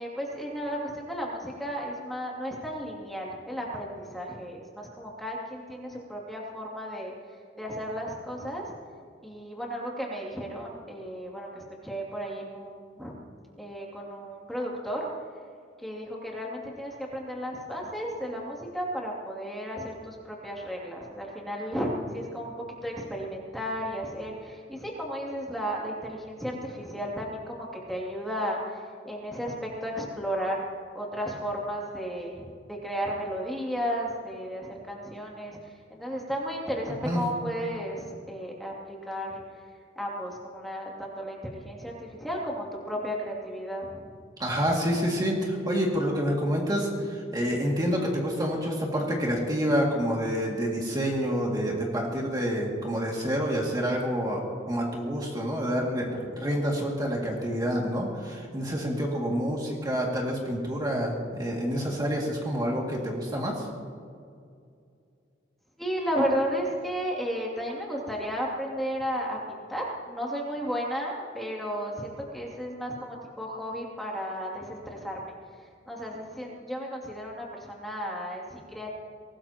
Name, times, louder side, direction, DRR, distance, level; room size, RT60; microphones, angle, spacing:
voice 1, 0.0-7.1 7.6-8.7 9.2-13.1 13.6-15.1 15.8-22.5 22.8-29.5 29.8-30.6 30.9-35.6 35.9-38.7 39.1-39.4 40.0-44.1 65.8-75.2 75.9-78.9, equal, ahead, -3 dB, 2.6 m, -34 dB
voice 2, 44.4-54.4 54.7-61.1 61.4-63.7, equal, 20° right, -2 dB, 2.3 m, -28 dB
24.0 x 19.0 x 3.0 m, 2.3 s
head